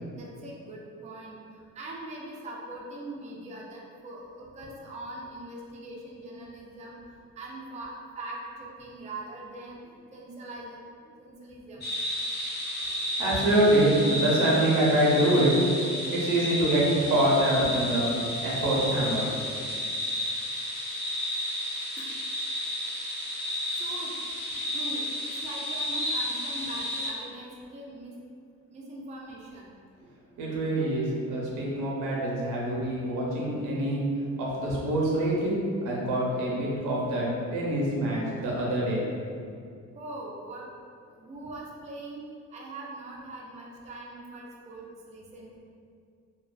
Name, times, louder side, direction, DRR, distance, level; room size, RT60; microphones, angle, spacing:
voice 1, 0.2-7.0 7.4-11.9 22.0-22.1 23.7-24.1 24.7-28.2 28.7-29.7 39.9-40.7 41.2-42.2 42.5-45.6, right 2 dB, 25° right, -3 dB, 0.4 m, -42 dB
sound 1, 11.8-27.1, left 1 dB, 35° left, 0.7 m, -32 dB
voice 2, 13.2-15.5 16.1-18.1 18.4-19.3 30.4-34.0 34.4-39.0, right 1 dB, 90° right, -4 dB, 0.7 m, -25 dB
2.3 x 2.3 x 2.3 m, 2.3 s
cardioid pair, 90°, 30 cm